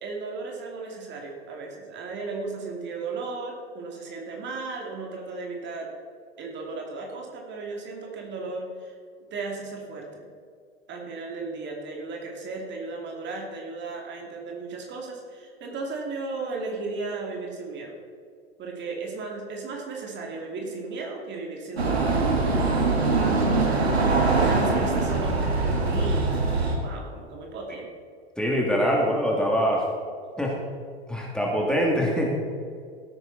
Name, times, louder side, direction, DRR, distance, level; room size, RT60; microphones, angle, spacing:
voice 1, 0.0-5.9 6.4-9.0 9.3-10.3 10.9-18.0 18.6-22.1 23.3-24.1 24.4-26.3 26.8-27.9, right 3 dB, 35° right, 0 dB, 2.6 m, -35 dB
sound 1, 21.8-26.8, right 3 dB, 80° right, 2.0 m, -23 dB
voice 2, 28.4-29.9 30.4-30.5 31.1-32.3, equal, ahead, -2 dB, 2.7 m, -23 dB
17.0 x 9.2 x 4.2 m, 2.2 s
figure-of-eight pair, 90°, 31 cm